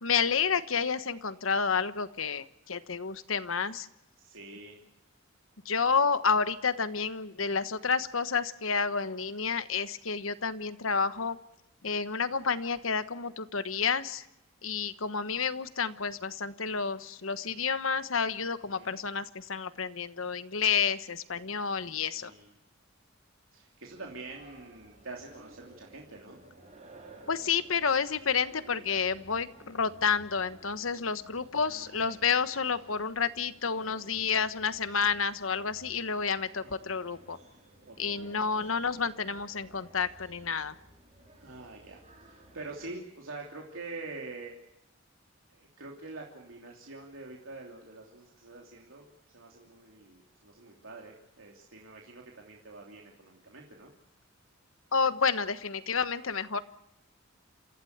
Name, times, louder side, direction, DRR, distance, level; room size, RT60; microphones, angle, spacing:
voice 1, 0.0-3.9 5.6-11.4 11.8-14.2 14.6-22.3 27.3-37.4 38.0-40.7 54.9-56.6, left 5 dB, 80° left, 12 dB, 1.3 m, -30 dB
voice 2, 4.2-4.8 18.6-18.9 22.1-22.5 23.5-26.4 31.6-32.2 36.6-37.0 37.9-38.3 41.3-44.6 45.5-49.1 49.3-53.9, right 3 dB, 85° right, -1 dB, 3.1 m, -46 dB
sound 1, 23.9-43.0, right 2 dB, 35° right, 5.5 m, -56 dB
28.0 x 15.5 x 8.1 m, 0.88 s
head